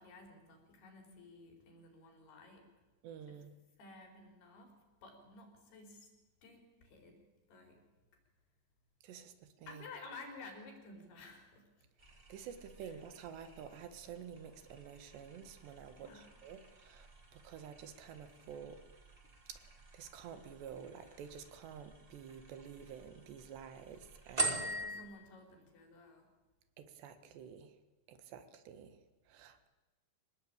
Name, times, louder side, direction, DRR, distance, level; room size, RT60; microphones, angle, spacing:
voice 1, 0.0-2.7 3.3-3.4 3.8-4.8 5.0-6.1 6.4-7.8 9.7-11.9 12.8-12.9 15.9-16.3 24.6-26.3, left 3 dB, 60° left, 3 dB, 6.0 m, -54 dB
voice 2, 3.0-3.5 9.0-9.9 12.3-18.8 19.5-24.7 26.8-27.8 28.1-29.7, right 8 dB, 70° right, 10 dB, 3.6 m, -50 dB
sound 1, 12.0-25.0, right 2 dB, 45° right, 0.7 m, -45 dB
25.0 x 20.0 x 8.7 m, 1.1 s
omnidirectional pair, 5.4 m